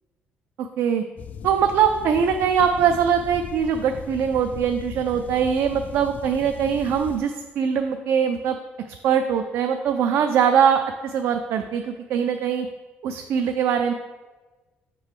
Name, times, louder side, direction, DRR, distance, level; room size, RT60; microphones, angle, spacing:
voice 1, 0.6-1.0 1.4-8.6 9.0-12.7 13.0-13.9, right 7 dB, 70° right, 6 dB, 0.4 m, -22 dB
sound 1, 1.2-7.2, left 6 dB, 45° left, 0.3 m, -38 dB
6.3 x 3.8 x 4.8 m, 1.3 s
cardioid pair, 125°, 4 cm